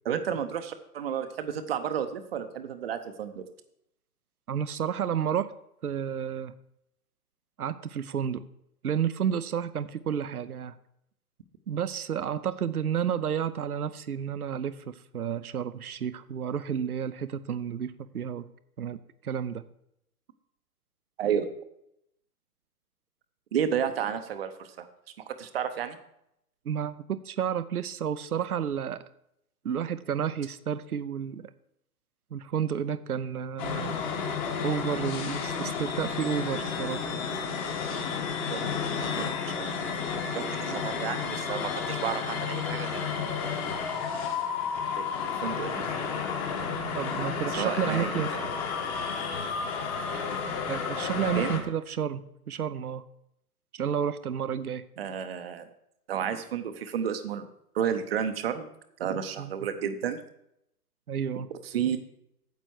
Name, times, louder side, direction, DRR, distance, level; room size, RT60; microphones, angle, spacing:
voice 1, 0.0-3.4 21.2-21.5 23.5-24.9 25.3-26.0 38.5-38.6 39.0-39.1 39.5-39.7 40.3-43.3 45.0-46.2 47.5-48.4 51.3-51.6 55.0-55.7 56.1-57.5 57.7-58.7 59.0-60.2 61.6-62.0, right 8 dB, 40° right, 9 dB, 0.8 m, -32 dB
voice 2, 4.5-5.5 5.8-6.5 7.6-8.5 8.8-10.8 11.7-18.5 18.8-19.7 26.7-29.0 29.6-31.5 32.3-34.0 34.6-37.1 46.9-48.3 50.7-53.0 53.7-54.8 59.4-59.5 61.1-61.5, right 8 dB, 70° right, 14 dB, 0.7 m, -31 dB
sound 1, 33.6-51.6, left 6 dB, 25° left, 1.2 m, -32 dB
9.3 x 7.8 x 4.6 m, 0.77 s
figure-of-eight pair, 125°, 47 cm